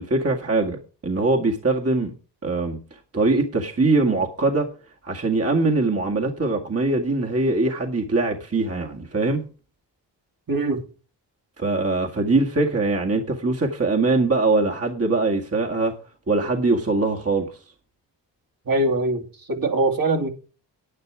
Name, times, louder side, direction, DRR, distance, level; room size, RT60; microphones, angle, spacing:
voice 1, 0.0-2.1 2.4-2.8 3.1-4.7 5.0-9.4 11.6-16.0 16.3-17.5, right 3 dB, 30° right, 2.0 m, -22 dB
voice 2, 10.5-10.8 18.7-20.3, right 2 dB, 50° right, 2.7 m, -22 dB
11.0 x 9.0 x 4.9 m
cardioid pair, 55°, 44 cm